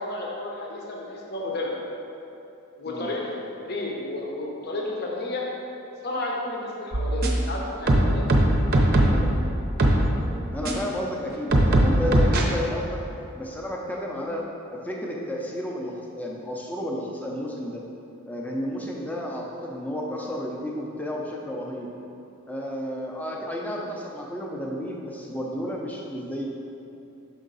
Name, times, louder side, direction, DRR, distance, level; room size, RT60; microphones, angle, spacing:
voice 1, 0.0-1.8 2.8-3.3 3.6-5.4 6.0-8.2, left 2 dB, 45° left, -2 dB, 0.8 m, -31 dB
sound 1, 6.9-7.5 7.9-9.3 9.8-10.0 10.6-10.7 11.5-12.4, right 1 dB, 40° right, 0.6 m, -19 dB
voice 2, 10.5-13.0 13.4-17.8 18.3-21.9 22.5-26.5, equal, 5° left, -2 dB, 0.6 m, -32 dB
6.3 x 5.1 x 3.9 m, 2.8 s
head